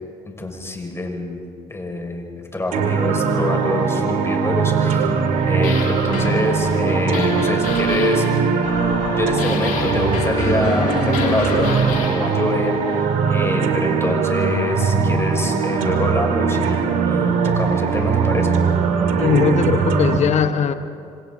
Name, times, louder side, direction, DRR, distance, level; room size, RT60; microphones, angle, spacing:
voice 1, 0.4-1.4 1.7-5.1 5.4-8.2 9.2-18.5, left 2 dB, 20° left, 1 dB, 5.7 m, -25 dB
sound 1, 2.7-20.2, right 5 dB, 70° right, 2.4 m, -20 dB
sound 2, 5.3-13.0, left 6 dB, 70° left, 2.4 m, -29 dB
voice 2, 19.2-20.7, left 7 dB, 50° left, 9 dB, 1.3 m, -19 dB
26.5 x 26.5 x 4.0 m, 2.2 s
hypercardioid pair, 60°, 14 cm